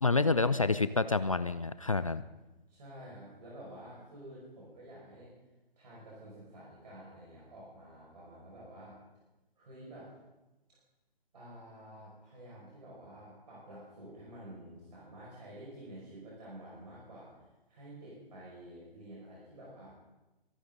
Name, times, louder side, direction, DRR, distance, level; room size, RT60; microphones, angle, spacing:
voice 1, 0.0-2.2, left 3 dB, 35° left, 14 dB, 0.4 m, -28 dB
voice 2, 2.7-5.3 5.8-9.0 9.6-10.1 11.3-20.0, right 1 dB, 45° right, -6 dB, 5.8 m, -50 dB
24.5 x 11.5 x 3.9 m, 1.0 s
figure-of-eight pair, 140°, 31 cm